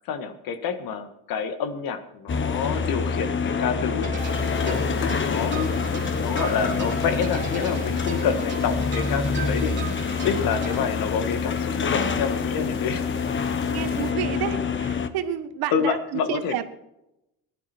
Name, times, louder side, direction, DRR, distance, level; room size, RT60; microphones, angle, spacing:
voice 1, 0.1-4.1 4.6-5.8 6.1-13.0 13.4-13.6 15.7-16.6, left 6 dB, 65° left, 9 dB, 1.8 m, -28 dB
sound 1, 2.3-15.1, left 5 dB, 30° left, 1.2 m, -26 dB
sound 2, 4.0-10.8, right 6 dB, 30° right, 3.1 m, -38 dB
sound 3, 4.2-14.1, left 10 dB, 80° left, 1.4 m, -42 dB
voice 2, 13.7-16.6, right 10 dB, 70° right, 11 dB, 1.4 m, -30 dB
17.5 x 11.5 x 4.5 m, 0.87 s
supercardioid pair, 95°, 37 cm